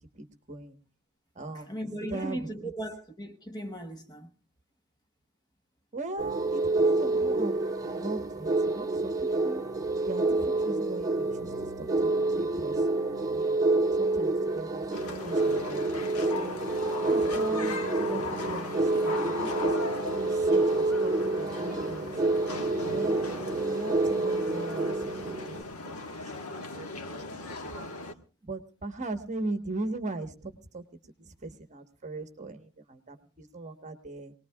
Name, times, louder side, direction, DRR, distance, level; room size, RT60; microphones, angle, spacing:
voice 1, 0.2-0.7 1.3-1.7 2.1-2.5 5.9-9.6 10.0-11.5 11.8-12.1 12.4-13.6 14.0-16.6 17.0-19.5 20.1-22.1 22.9-25.0 25.2-25.9 26.4-27.9 28.4-30.8 31.2-34.3, right 2 dB, 35° right, 1.3 m, -39 dB
voice 2, 1.5-4.3, right 1 dB, 20° left, 1.1 m, -37 dB
sound 1, 6.2-25.6, right 2 dB, 15° right, 1.5 m, -28 dB
sound 2, 14.9-28.1, left 2 dB, 85° left, 1.4 m, -38 dB
25.0 x 19.5 x 2.3 m
head